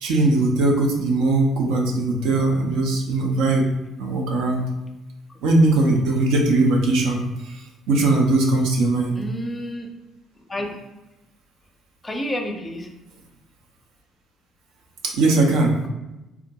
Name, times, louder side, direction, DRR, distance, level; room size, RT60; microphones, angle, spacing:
voice 1, 0.0-3.6 4.0-4.6 5.4-7.6 7.9-9.2 15.0-15.8, right 2 dB, 70° right, 0 dB, 0.5 m, -20 dB
voice 2, 9.1-9.9 10.5-10.7 12.0-12.9, left 1 dB, 25° left, 2 dB, 0.6 m, -29 dB
3.4 x 2.1 x 2.7 m, 0.99 s
figure-of-eight pair, 50°, 0 cm